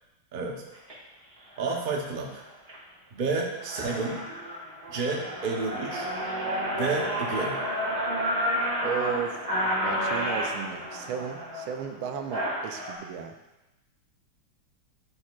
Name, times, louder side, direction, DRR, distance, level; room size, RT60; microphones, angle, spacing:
voice 1, 0.3-0.6 1.6-2.4 3.1-4.2 4.9-6.1 6.7-7.6, right 3 dB, 55° right, 0 dB, 0.5 m, -30 dB
sound 1, 0.7-0.9 1.6-1.8 2.3-2.8 3.2-3.3 3.5-12.9, equal, 35° right, 2.2 m, -31 dB
voice 2, 8.8-9.5 9.8-13.3, right 8 dB, 90° right, 6 dB, 1.4 m, -34 dB
9.8 x 4.4 x 2.4 m, 1.0 s
omnidirectional pair, 2.1 m